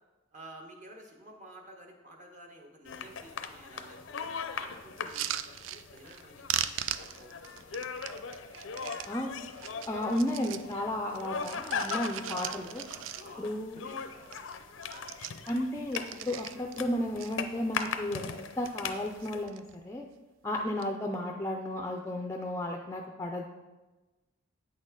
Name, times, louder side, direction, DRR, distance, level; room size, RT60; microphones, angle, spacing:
voice 1, 0.3-7.9 13.2-13.5 13.8-14.5 14.9-15.1 20.5-20.7, right 1 dB, 40° right, 1 dB, 1.3 m, -52 dB
sound 1, 2.8-19.4, left 5 dB, 80° left, 0.6 m, -40 dB
sound 2, 5.0-6.2 6.5-9.1 9.5-10.7 11.1-13.6 13.9-14.0 14.2-14.5 14.8-16.8 17.2-17.9 18.4-18.9 19.2-19.8 20.6-20.9, right 11 dB, 75° right, 0.4 m, -39 dB
voice 2, 9.9-12.8 13.4-13.8 15.5-18.3 18.6-20.0 20.4-23.5, left 1 dB, 15° left, 2 dB, 0.4 m, -33 dB
8.7 x 6.3 x 3.8 m, 1.2 s
head